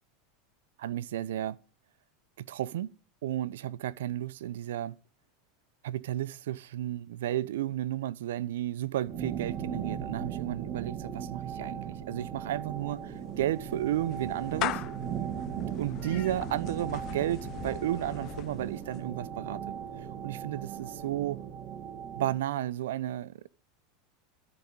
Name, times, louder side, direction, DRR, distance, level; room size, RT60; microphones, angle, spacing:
voice 1, 0.8-1.6 2.4-5.0 5.8-14.8 15.5-21.4 22.2-23.5, right 13 dB, 85° right, 0.7 m, -33 dB
sound 1, 9.1-22.4, right 8 dB, 40° right, 2.2 m, -38 dB
Clapping / Meow, 12.7-19.1, left 16 dB, 45° left, 0.5 m, -40 dB
13.5 x 5.5 x 8.6 m
supercardioid pair, 125°, 0 cm